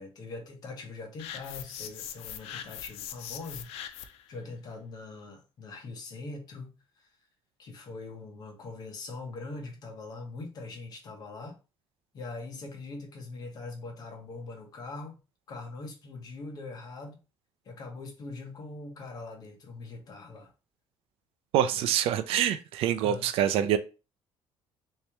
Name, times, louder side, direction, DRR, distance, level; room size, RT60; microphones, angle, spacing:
voice 1, 0.0-4.0 4.3-6.7 7.6-11.6 12.1-15.1 15.5-17.2 17.6-20.5 21.7-21.9 23.0-23.3, left 3 dB, 40° left, 1.0 m, -42 dB
sound 1, 1.2-4.3, left 10 dB, 75° left, 0.5 m, -41 dB
voice 2, 21.5-23.8, right 10 dB, 65° right, 0.4 m, -25 dB
3.4 x 3.2 x 2.9 m
cardioid pair, 175°, 10 cm